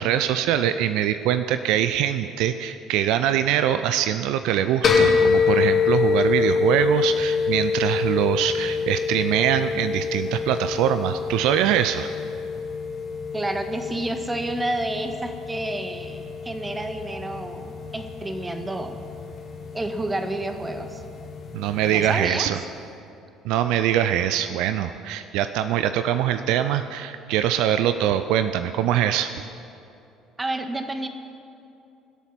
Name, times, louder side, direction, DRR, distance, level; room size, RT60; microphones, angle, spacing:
voice 1, 0.0-12.1 21.5-22.6 23.4-29.3, right 10 dB, 65° right, 10 dB, 0.5 m, -23 dB
sound 1, 4.8-22.2, left 5 dB, 45° left, 3.5 m, -26 dB
voice 2, 13.3-19.0 19.7-21.0 21.9-22.5 30.4-31.1, right 1 dB, 15° right, 7 dB, 1.6 m, -30 dB
23.5 x 8.2 x 6.0 m, 2.7 s
hypercardioid pair, 55°, 0 cm